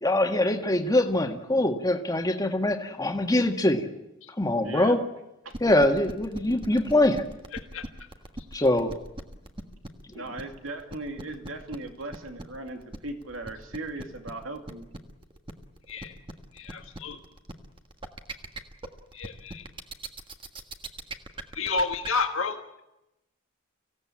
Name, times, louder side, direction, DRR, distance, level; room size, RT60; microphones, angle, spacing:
voice 1, 0.0-3.8 4.4-5.0 5.6-7.2 8.5-8.9, left 1 dB, 20° left, 4 dB, 1.8 m, -23 dB
voice 2, 4.6-5.0 5.4-5.6 10.1-14.9, right 2 dB, 85° right, 5 dB, 2.7 m, -38 dB
sound 1, 5.5-22.1, right 2 dB, 25° right, 1.6 m, -39 dB
voice 3, 7.5-7.9 15.9-16.1 16.5-17.2 19.1-19.6 21.5-22.8, left 4 dB, 80° left, 4 dB, 1.7 m, -31 dB
25.0 x 16.5 x 8.8 m, 0.94 s
head